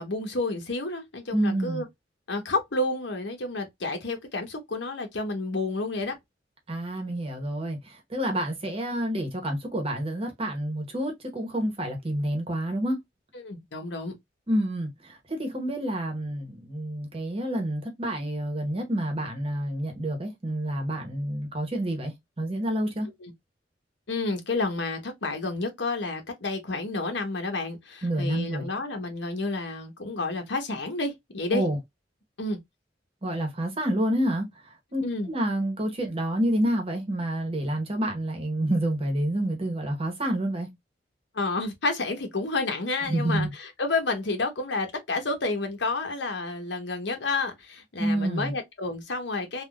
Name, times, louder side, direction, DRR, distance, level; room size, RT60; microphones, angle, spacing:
voice 1, 0.0-1.8 2.3-6.1 13.3-14.2 23.2-23.3 24.1-31.6 32.4-32.6 35.0-35.3 41.3-49.6, left 3 dB, 75° left, 1.0 m, -30 dB
voice 2, 1.3-1.8 6.7-13.0 14.5-23.1 28.0-28.7 31.5-31.8 33.2-34.5 34.9-40.7 43.1-43.5 48.0-48.5, right 1 dB, 30° right, 0.9 m, -28 dB
3.5 x 2.3 x 2.3 m
head